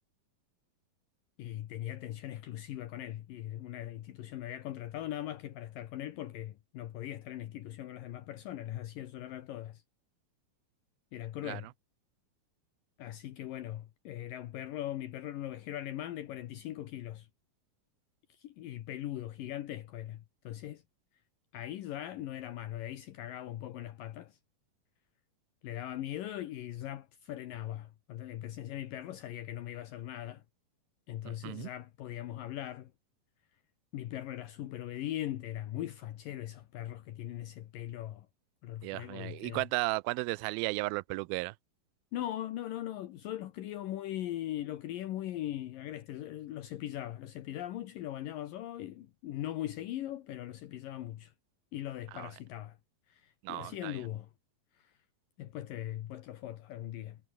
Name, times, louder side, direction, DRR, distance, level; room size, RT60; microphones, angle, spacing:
voice 1, 1.4-9.8 11.1-11.7 13.0-17.3 18.3-20.8 21.5-24.4 25.6-30.4 31.1-32.9 33.9-38.3 38.6-39.6 42.1-51.3 51.7-52.8 53.1-54.3 54.7-54.9 55.4-57.2, left 13 dB, 70° left, 2.8 m, -40 dB
voice 2, 31.2-31.7 38.8-41.5 52.1-52.3 53.4-54.0, right 23 dB, 85° right, 2.4 m, -35 dB
omnidirectional pair, 4.3 m